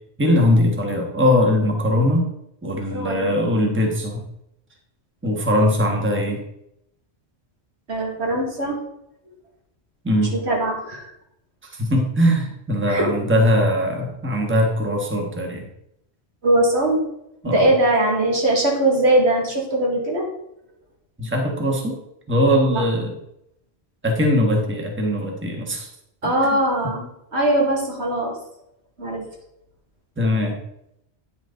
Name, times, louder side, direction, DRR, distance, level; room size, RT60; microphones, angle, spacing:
voice 1, 0.2-2.2 2.6-4.2 5.2-6.4 10.0-10.4 11.7-15.7 17.4-17.7 21.2-22.0 22.3-23.2 24.0-25.9 26.2-26.3 30.2-30.6, left 1 dB, 10° right, 1 dB, 1.3 m, -20 dB
voice 2, 2.9-3.3 7.9-8.8 10.3-11.1 12.9-13.1 16.4-17.0 17.4-20.3 22.7-22.8 26.2-28.3 29.0-29.2, right 1 dB, 75° right, -1 dB, 2.2 m, -21 dB
9.3 x 6.0 x 3.8 m, 0.79 s
omnidirectional pair, 1.1 m